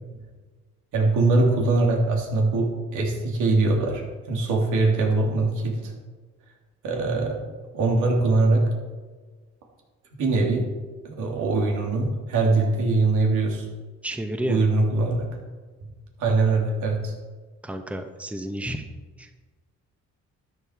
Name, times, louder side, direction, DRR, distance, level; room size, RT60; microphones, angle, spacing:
voice 1, 0.9-5.9 6.8-7.4 7.7-8.6 10.2-10.6 11.0-13.7 14.5-15.3 16.2-17.1, right 3 dB, 85° right, 0 dB, 3.2 m, -22 dB
voice 2, 14.0-14.7 17.6-18.9 19.2-19.3, right 1 dB, 5° right, 5 dB, 1.1 m, -31 dB
13.0 x 9.8 x 4.8 m, 1.4 s
cardioid pair, 90°, 30 cm